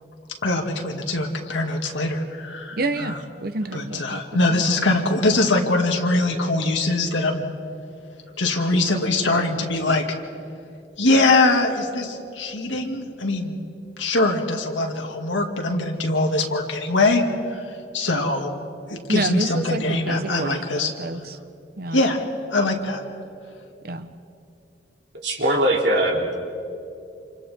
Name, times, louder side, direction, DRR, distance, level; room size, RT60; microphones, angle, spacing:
voice 1, 0.4-3.2 3.7-7.4 8.4-10.0 11.0-13.6 14.0-17.2 17.5-17.6 17.9-18.5 18.9-20.9 21.9-22.2 22.5-23.0, left 2 dB, 85° left, 2 dB, 2.1 m, -22 dB
voice 2, 2.8-4.2 4.5-4.6 19.1-21.4 21.8-22.0 23.8-24.1, right 2 dB, 55° right, 10 dB, 0.9 m, -28 dB
voice 3, 25.1-26.3, right 1 dB, 70° right, 0 dB, 3.1 m, -21 dB
29.0 x 27.5 x 3.6 m, 2.6 s
head